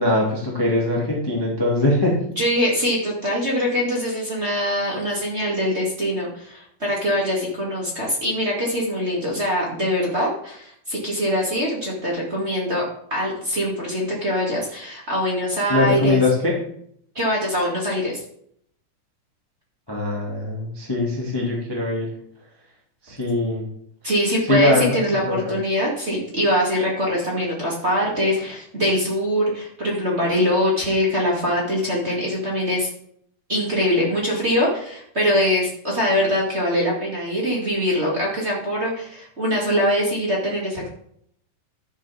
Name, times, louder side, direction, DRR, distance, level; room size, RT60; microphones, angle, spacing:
voice 1, 0.0-2.1 15.7-16.5 19.9-22.1 23.0-23.6 24.5-25.0 25.2-25.3, left 2 dB, 15° left, -4 dB, 1.0 m, -21 dB
voice 2, 2.4-12.8 13.1-16.2 17.1-18.2 24.0-32.9 33.5-40.9, equal, 20° right, -4 dB, 1.9 m, -23 dB
13.0 x 7.4 x 3.6 m, 0.67 s
omnidirectional pair, 4.9 m